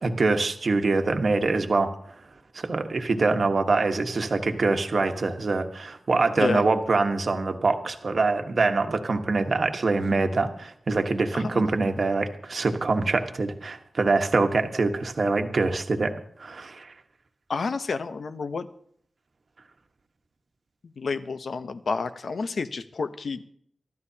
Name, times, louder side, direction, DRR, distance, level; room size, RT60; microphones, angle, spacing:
voice 1, 0.0-1.9 2.5-16.1 16.4-16.9, right 3 dB, 55° right, 6 dB, 1.3 m, -24 dB
voice 2, 11.3-11.6 17.5-18.7 21.0-23.4, left 4 dB, 70° left, 10 dB, 0.8 m, -30 dB
24.5 x 13.0 x 2.8 m, 0.64 s
wide cardioid pair, 120°, 0 cm